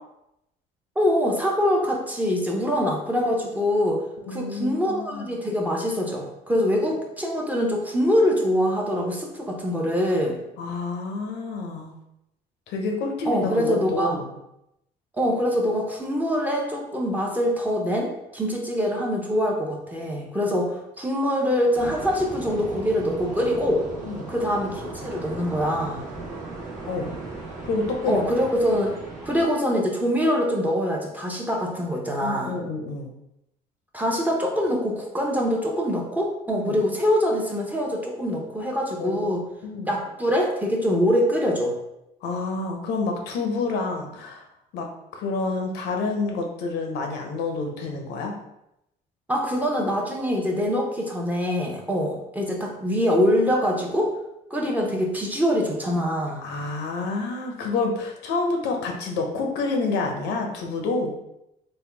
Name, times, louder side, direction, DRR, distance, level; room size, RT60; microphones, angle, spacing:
voice 1, 1.0-4.0 4.3-10.4 13.2-14.2 15.2-23.9 24.3-26.0 28.1-28.9 29.2-32.6 33.9-39.4 39.9-41.7 49.3-54.1 54.5-56.4, equal, 10° right, -1 dB, 0.7 m, -24 dB
voice 2, 4.2-5.3 10.6-11.9 12.7-14.3 24.0-24.3 26.9-27.1 27.6-28.2 32.2-33.1 36.5-36.8 39.0-39.9 42.2-44.4 44.7-44.9 45.1-48.4 56.4-61.1, left 3 dB, 85° left, 2 dB, 0.7 m, -28 dB
sound 1, 21.7-29.4, right 3 dB, 45° right, 1.0 m, -37 dB
3.4 x 2.2 x 3.3 m, 0.84 s
cardioid pair, 110°, 17 cm